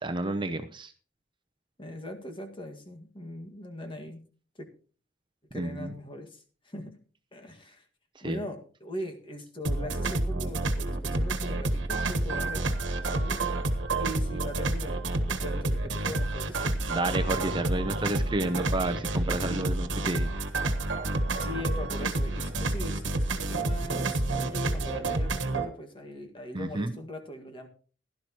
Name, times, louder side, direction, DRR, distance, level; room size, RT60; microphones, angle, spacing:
voice 1, 0.0-0.9 5.5-5.9 8.2-8.4 16.9-20.3 26.5-26.9, right 2 dB, 25° right, 8 dB, 0.8 m, -30 dB
voice 2, 1.8-4.2 4.6-4.7 5.5-7.0 7.3-7.8 8.2-12.7 13.0-13.4 14.0-16.8 19.5-19.7 21.4-27.7, left 1 dB, 25° left, 4 dB, 1.9 m, -40 dB
sound 1, 9.6-25.7, right 2 dB, 65° right, 1.5 m, -29 dB
16.5 x 12.0 x 3.0 m, 0.38 s
head